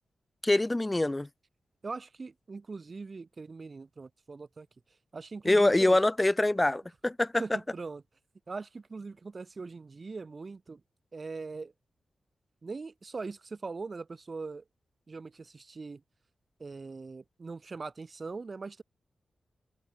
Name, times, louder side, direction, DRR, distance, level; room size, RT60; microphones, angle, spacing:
voice 1, 0.4-1.3 5.4-7.4, left 2 dB, 20° left, 1.3 m, -24 dB
voice 2, 1.8-4.7 5.1-6.0 7.4-8.0 8.5-10.8 11.1-11.7 12.6-14.6 15.1-16.0 16.6-18.8, right 4 dB, 45° right, 1.5 m, -41 dB
cardioid pair, 60°, 0 cm